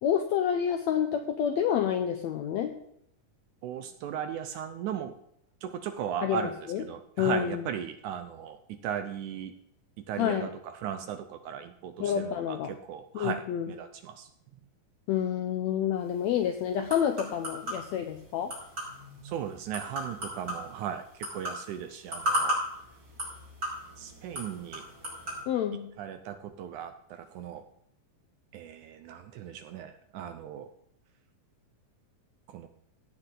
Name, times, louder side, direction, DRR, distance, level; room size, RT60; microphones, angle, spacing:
voice 1, 0.0-2.7 6.2-6.8 7.2-7.6 10.2-10.5 12.0-12.7 13.1-13.7 15.1-18.5 25.5-25.9, left 9 dB, 80° left, 7 dB, 1.6 m, -28 dB
voice 2, 3.6-5.2 5.6-9.5 10.0-14.3 19.2-22.6 24.0-24.9 26.0-27.6 28.5-30.7 32.5-32.7, right 9 dB, 75° right, 9 dB, 1.9 m, -37 dB
sound 1, 16.0-25.4, equal, 25° right, 6.2 m, -36 dB
16.5 x 8.8 x 3.9 m, 0.74 s
omnidirectional pair, 4.0 m